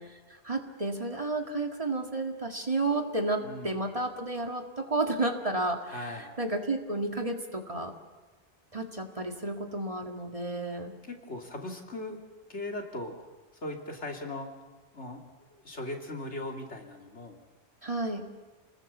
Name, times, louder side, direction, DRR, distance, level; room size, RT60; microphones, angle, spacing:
voice 1, 0.0-6.1 6.4-7.9 8.7-10.9 17.8-18.3, right 2 dB, 30° right, 4 dB, 2.0 m, -32 dB
voice 2, 3.4-3.8 5.9-6.3 11.0-12.2 12.5-13.2 13.6-14.5 14.9-15.2 15.5-17.4, left 2 dB, 85° left, 2 dB, 3.1 m, -38 dB
29.0 x 20.0 x 7.3 m, 1.2 s
omnidirectional pair, 1.1 m